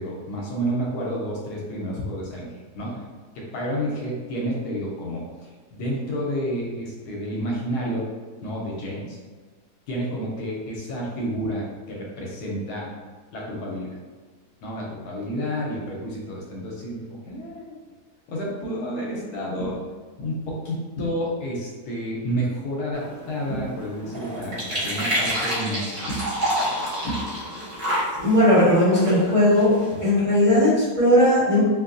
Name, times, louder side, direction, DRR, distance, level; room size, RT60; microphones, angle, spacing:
voice 1, 0.0-3.0 3.3-8.1 8.4-9.2 9.9-12.9 13.3-14.0 14.6-17.7 18.3-19.8 20.2-26.3 26.6-27.3, equal, 75° left, -3 dB, 1.1 m, -30 dB
sound 1, 22.9-30.1, equal, 35° right, 0.6 m, -29 dB
voice 2, 28.2-29.7 30.0-31.6, left 1 dB, 20° right, -12 dB, 1.5 m, -17 dB
2.7 x 2.6 x 2.4 m, 1.4 s
omnidirectional pair, 1.7 m